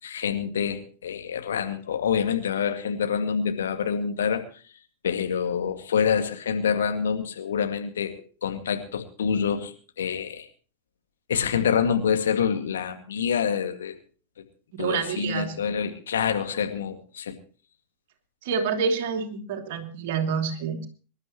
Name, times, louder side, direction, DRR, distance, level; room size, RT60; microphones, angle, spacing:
voice 1, 0.0-4.7 5.0-10.5 11.3-14.0 14.4-14.5 14.8-17.4, left 7 dB, 65° left, 5 dB, 2.1 m, -27 dB
voice 2, 14.8-15.5 18.4-20.9, right 6 dB, 50° right, 4 dB, 2.9 m, -27 dB
25.5 x 12.0 x 3.1 m, 0.39 s
figure-of-eight pair, 90°, 0 cm